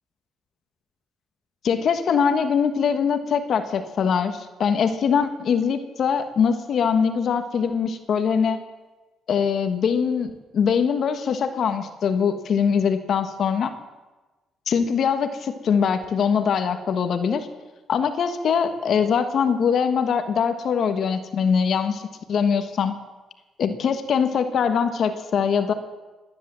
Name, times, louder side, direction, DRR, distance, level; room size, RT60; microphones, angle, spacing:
voice 1, 1.6-8.6 9.3-13.7 14.7-17.5 17.9-22.0 22.3-22.9 23.6-25.7, left 6 dB, 60° left, 9 dB, 1.4 m, -22 dB
18.0 x 10.5 x 7.5 m, 1.2 s
cardioid pair, 90°, 0 cm